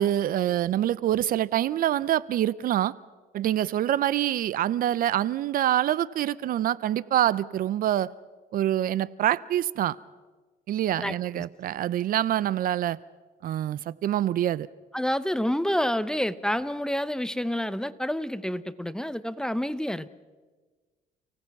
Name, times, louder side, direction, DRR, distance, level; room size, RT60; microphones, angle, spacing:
voice 1, 0.0-2.9 3.3-8.1 8.5-10.0 10.7-13.0 13.4-14.7, right 12 dB, 55° right, 20 dB, 0.6 m, -25 dB
voice 2, 11.0-11.4 14.9-20.1, equal, 5° left, 14 dB, 0.7 m, -28 dB
30.0 x 17.5 x 5.9 m, 1.3 s
cardioid pair, 110°, 17 cm